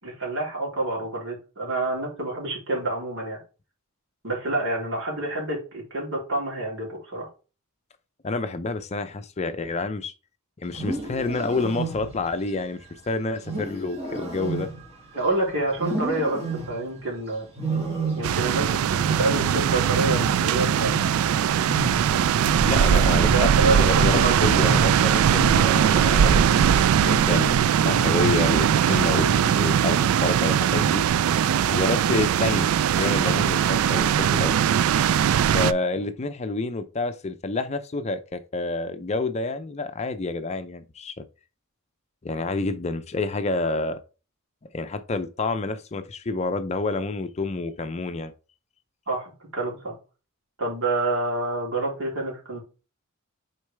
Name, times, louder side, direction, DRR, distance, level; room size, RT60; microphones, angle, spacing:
voice 1, 0.0-3.4 4.2-7.3 15.1-17.5 18.2-21.0 22.9-24.4 31.7-31.9 35.9-36.1 49.1-50.0 50.6-52.6, right 2 dB, 65° right, 3.3 m, -28 dB
voice 2, 8.2-10.1 10.6-12.8 13.1-14.7 22.6-31.0 31.7-34.6 35.5-41.2 42.2-44.0 44.7-48.3, left 3 dB, 30° left, 0.5 m, -28 dB
Wild animals, 10.6-12.4 13.4-15.3 15.8-17.0 17.6-18.6 18.9-21.4 21.6-26.6 26.9-27.4 27.8-28.2 29.0-29.4, right 2 dB, 30° right, 2.0 m, -32 dB
sound 1, 18.2-35.7, right 9 dB, 80° right, 0.3 m, -20 dB
6.3 x 4.6 x 3.4 m
head